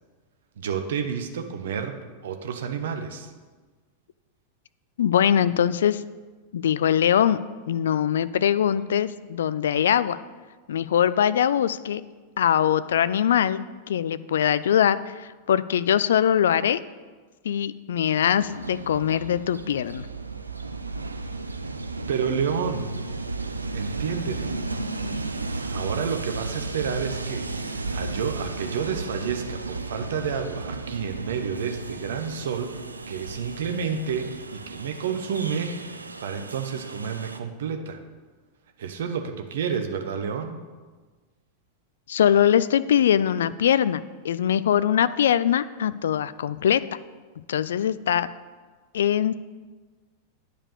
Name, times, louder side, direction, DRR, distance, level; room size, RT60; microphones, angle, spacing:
voice 1, 0.6-3.3 22.1-22.9 23.7-24.5 25.5-32.8 33.1-38.0 38.8-40.6, right 6 dB, 60° right, 6 dB, 0.8 m, -30 dB
voice 2, 5.0-6.0 6.5-7.4 7.7-10.2 10.7-12.0 12.4-16.8 17.4-20.1 42.1-46.8 47.5-48.3 48.9-49.3, left 9 dB, 60° left, 16 dB, 0.3 m, -22 dB
Train, 18.4-37.4, right 3 dB, 80° right, 0.5 m, -34 dB
9.7 x 5.1 x 6.7 m, 1.4 s
figure-of-eight pair, 90°, 0 cm